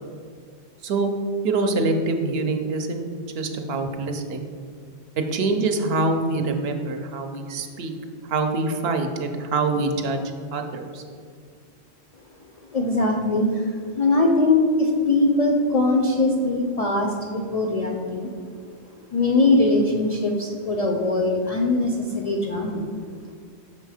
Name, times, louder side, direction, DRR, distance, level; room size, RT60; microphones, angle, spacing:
voice 1, 0.8-1.1 1.4-3.1 3.3-4.5 5.2-7.9 8.2-10.2 10.5-11.0, right 3 dB, 70° right, 5 dB, 0.8 m, -25 dB
voice 2, 12.7-18.3 19.1-22.9, left 2 dB, 55° left, 0 dB, 0.4 m, -21 dB
5.9 x 3.6 x 4.8 m, 2.2 s
omnidirectional pair, 1.1 m